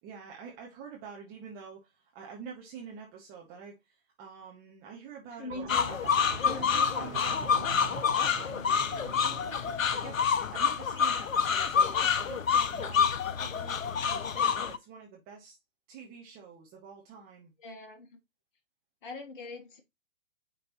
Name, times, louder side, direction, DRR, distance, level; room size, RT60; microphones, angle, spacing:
voice 1, 0.0-5.9 6.4-8.6 9.0-10.2 10.5-13.1 13.4-13.8 14.1-15.6 15.9-17.5, right 6 dB, 20° right, 1.5 m, -47 dB
voice 2, 5.4-5.9 6.4-6.7 17.6-18.2 19.0-19.8, left 3 dB, 40° left, 1.3 m, -42 dB
sound 1, 5.5-9.8, right 6 dB, 60° right, 1.0 m, -44 dB
sound 2, 5.7-14.8, left 7 dB, 80° left, 0.7 m, -28 dB
9.6 x 3.7 x 3.0 m
figure-of-eight pair, 125°, 40 cm